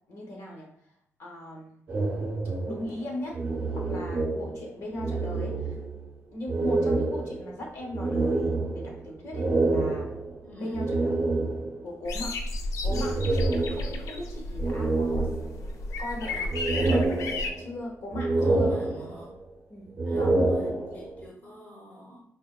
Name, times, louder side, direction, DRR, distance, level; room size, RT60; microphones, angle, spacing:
voice 1, 0.1-0.7 1.2-1.8 2.6-3.4 3.7-5.8 6.3-10.1 10.6-11.2 11.8-13.2 13.7-15.3 16.0-17.1 17.6-18.7 19.7-20.4 20.9-21.1, left 1 dB, 60° left, 0 dB, 0.9 m, -38 dB
sound 1, 1.9-4.7 5.0-6.1 6.5-11.9 12.9-14.2 14.6-15.9 16.3-17.8 18.1-19.4 19.9-21.2, right 2 dB, 45° right, 0.6 m, -28 dB
voice 2, 10.4-10.9 18.3-19.3 20.0-22.2, equal, 30° left, -2 dB, 0.7 m, -44 dB
sound 2, 12.1-17.5, left 2 dB, 85° left, 0.4 m, -33 dB
4.1 x 2.9 x 2.2 m, 0.71 s
wide cardioid pair, 170°, 5 cm